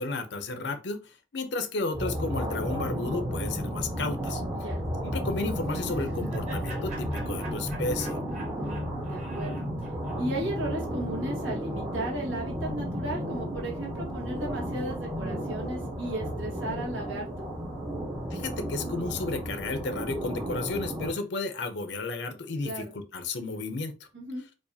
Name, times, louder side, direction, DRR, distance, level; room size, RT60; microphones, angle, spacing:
voice 1, 0.0-4.4 5.0-8.2 18.3-23.9, left 3 dB, 60° left, 8 dB, 0.6 m, -33 dB
sound 1, 1.9-21.1, equal, 15° right, 0.8 m, -33 dB
Laughter, 5.7-10.8, right 3 dB, 35° right, 1.5 m, -47 dB
voice 2, 8.4-17.4 22.6-22.9 24.1-24.4, right 1 dB, 80° right, -2 dB, 1.6 m, -35 dB
4.7 x 2.4 x 2.7 m, 0.31 s
head